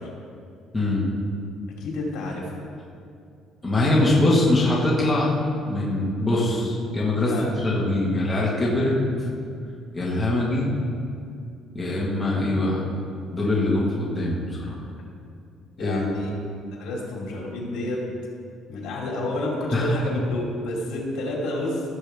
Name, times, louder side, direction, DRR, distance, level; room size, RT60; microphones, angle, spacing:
voice 1, 0.7-1.1 3.6-5.3 5.7-9.3 9.9-10.7 11.7-12.8 13.3-14.8 15.8-16.1 19.7-19.9, left 1 dB, 10° left, -6 dB, 1.4 m, -23 dB
voice 2, 1.8-2.4 7.3-7.5 15.8-16.3 16.7-18.0 18.7-21.8, left 1 dB, 70° left, -2 dB, 2.7 m, -29 dB
16.0 x 7.2 x 3.4 m, 2.4 s
cardioid pair, 170°, 0 cm